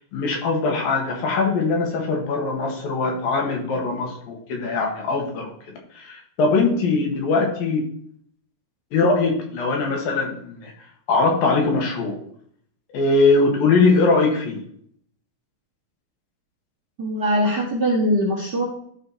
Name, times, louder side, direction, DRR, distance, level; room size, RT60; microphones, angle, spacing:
voice 1, 0.0-5.5 5.9-7.9 8.9-10.7 11.1-12.2 12.9-14.6, left 3 dB, 75° left, 1 dB, 3.5 m, -21 dB
voice 2, 17.0-18.6, equal, 35° right, -4 dB, 1.8 m, -21 dB
12.5 x 4.5 x 4.4 m, 0.63 s
omnidirectional pair, 4.2 m